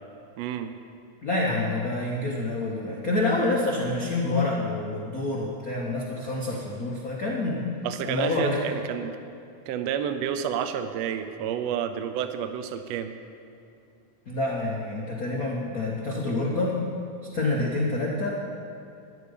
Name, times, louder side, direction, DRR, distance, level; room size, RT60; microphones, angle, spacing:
voice 1, 0.4-0.7 7.8-9.1 9.7-13.1 18.2-18.3, right 8 dB, 75° right, 9 dB, 1.6 m, -30 dB
voice 2, 1.2-7.6 8.0-8.6 14.3-16.8 17.3-18.3, left 2 dB, 80° left, -2 dB, 0.8 m, -27 dB
13.5 x 10.5 x 5.2 m, 2.6 s
omnidirectional pair, 3.6 m